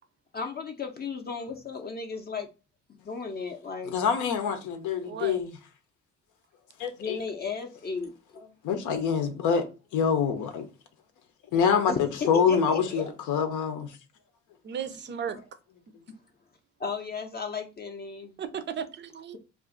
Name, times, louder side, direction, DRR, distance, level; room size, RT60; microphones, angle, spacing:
voice 1, 0.3-2.5 3.0-3.9 7.0-8.1 11.9-13.1 16.8-18.4, left 5 dB, 35° left, 0.5 m, -35 dB
voice 2, 3.9-5.5 6.8-7.2 8.6-9.7 9.9-10.7 11.5-13.9, left 6 dB, 85° left, 0.6 m, -25 dB
voice 3, 5.0-5.4 14.6-15.4 18.4-19.4, right 8 dB, 40° right, 0.4 m, -35 dB
2.5 x 2.4 x 3.6 m
cardioid pair, 90°, 30 cm